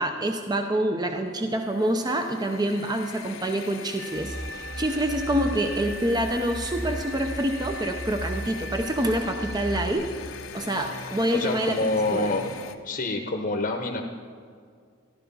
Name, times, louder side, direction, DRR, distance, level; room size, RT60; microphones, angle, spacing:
voice 1, 0.0-10.1 10.5-11.7 12.1-12.3, right 1 dB, 20° right, 5 dB, 0.6 m, -26 dB
sound 1, 1.5-12.8, left 6 dB, 75° left, 0.8 m, -41 dB
sound 2, 4.0-9.8, right 2 dB, 5° left, 0.9 m, -41 dB
sound 3, 4.1-9.9, right 1 dB, 50° right, 1.7 m, -37 dB
voice 2, 11.3-12.5 12.8-14.0, left 2 dB, 45° left, 3 dB, 0.9 m, -27 dB
14.0 x 12.0 x 5.4 m, 2.1 s
head